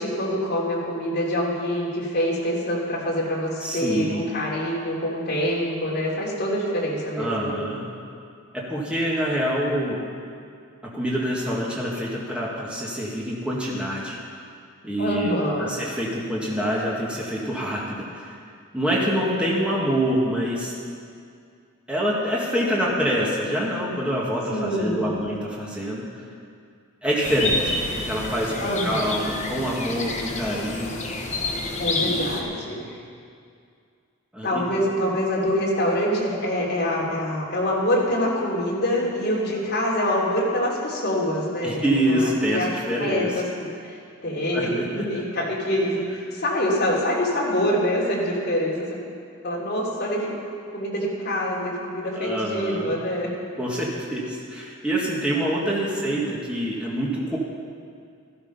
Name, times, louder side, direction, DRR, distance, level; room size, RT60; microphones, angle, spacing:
voice 1, 0.0-7.6 15.0-15.8 24.5-25.2 28.6-29.1 31.8-32.8 34.4-42.7 43.0-44.0 44.2-48.8 49.4-50.4 50.7-53.3 55.9-56.0, equal, 50° left, -5 dB, 3.4 m, -25 dB
voice 2, 3.6-4.2 7.2-7.8 8.5-10.0 10.8-14.2 14.8-15.3 15.6-18.4 18.7-20.7 21.9-26.0 27.0-28.5 28.8-31.0 32.0-32.3 34.3-34.6 41.6-43.3 44.5-45.0 52.1-52.9 53.6-57.4, equal, 5° right, -5 dB, 1.7 m, -26 dB
sound 1, 27.2-32.4, left 2 dB, 30° left, 1.5 m, -29 dB
14.0 x 13.0 x 5.5 m, 2.3 s
head